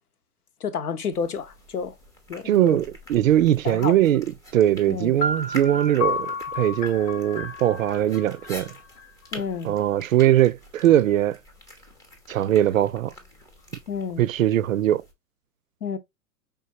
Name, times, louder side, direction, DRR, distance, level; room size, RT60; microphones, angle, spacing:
voice 1, 0.6-1.9 2.3-2.8 3.6-3.9 4.9-5.2 9.3-9.7 13.9-14.2 15.8-16.0, left 6 dB, 75° left, 0.9 m, -30 dB
sound 1, 1.1-15.1, left 1 dB, 10° left, 0.6 m, -46 dB
voice 2, 2.4-8.7 9.6-11.4 12.3-13.1 14.2-15.0, right 12 dB, 60° right, 0.5 m, -21 dB
sound 2, 5.2-9.1, left 2 dB, 30° left, 0.9 m, -31 dB
5.1 x 3.6 x 2.7 m
figure-of-eight pair, 115°, 45 cm